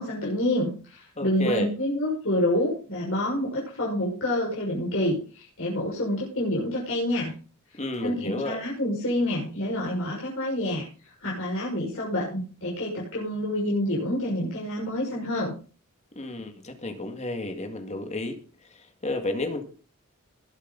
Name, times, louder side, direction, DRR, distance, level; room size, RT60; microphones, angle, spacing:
voice 1, 0.0-7.3 8.0-15.5, left 1 dB, 65° left, -4 dB, 5.9 m, -28 dB
voice 2, 1.2-1.7 7.8-8.6 16.2-18.4 18.6-19.6, left 2 dB, 30° left, 6 dB, 2.0 m, -31 dB
20.5 x 8.2 x 4.0 m, 0.39 s
head